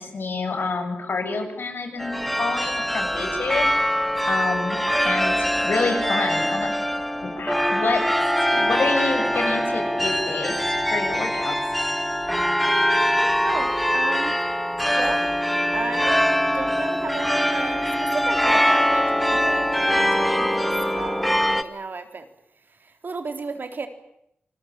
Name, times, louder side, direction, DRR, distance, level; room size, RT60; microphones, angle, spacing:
voice 1, 0.0-3.7 4.2-4.8 5.0-6.7 7.2-8.0 8.5-10.5 10.9-11.6, left 3 dB, 70° left, 6 dB, 7.1 m, -28 dB
sound 1, 2.0-21.6, equal, ahead, 1.8 m, -23 dB
voice 2, 13.4-14.4 15.0-22.3 22.7-23.9, right 4 dB, 60° right, 7 dB, 3.8 m, -34 dB
29.0 x 21.0 x 9.1 m, 0.76 s
wide cardioid pair, 105°, 4 cm